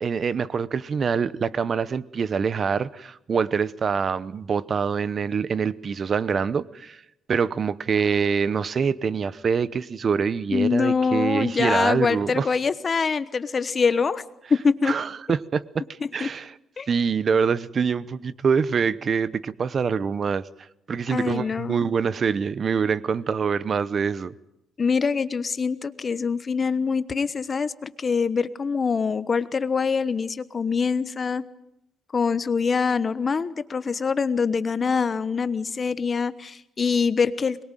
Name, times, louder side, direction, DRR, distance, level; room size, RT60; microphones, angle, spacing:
voice 1, 0.0-7.0 7.3-12.5 14.8-15.8 16.1-16.5 16.9-20.5 20.9-24.3, right 6 dB, 40° right, 0.9 m, -25 dB
voice 2, 10.5-14.2 14.5-14.9 16.0-16.3 16.8-16.9 21.1-21.8 24.8-31.4 32.1-37.6, left 5 dB, 35° left, 1.1 m, -24 dB
23.0 x 21.5 x 9.1 m
cardioid pair, 130°, 0 cm